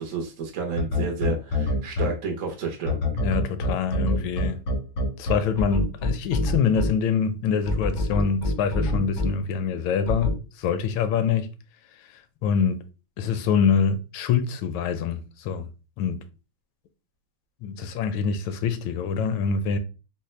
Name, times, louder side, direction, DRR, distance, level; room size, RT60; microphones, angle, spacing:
voice 1, 0.0-3.0, right 5 dB, 60° right, 0.8 m, -30 dB
sound 1, 0.8-2.1 2.9-6.9 7.7-9.3 10.1-10.3, left 1 dB, 65° left, 0.7 m, -25 dB
voice 2, 3.2-4.6 5.2-11.5 12.4-12.8 13.2-15.6 16.0-16.2 17.6-19.8, left 6 dB, 80° left, 1.3 m, -25 dB
4.1 x 2.1 x 3.1 m
omnidirectional pair, 2.2 m